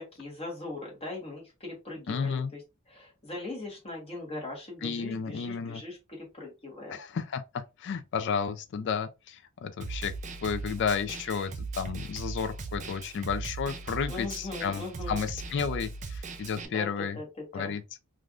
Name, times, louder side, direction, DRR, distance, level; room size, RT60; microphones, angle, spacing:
voice 1, 0.0-2.6 2.9-7.0 14.1-15.2 16.7-17.7, left 2 dB, 30° left, 1.3 m, -40 dB
voice 2, 2.1-2.5 4.8-5.8 6.9-10.1 10.4-17.2 17.5-18.0, left 6 dB, 55° left, 0.4 m, -32 dB
Snare drum, 9.8-16.7, right 4 dB, 35° right, 0.4 m, -39 dB
3.3 x 2.5 x 2.4 m
head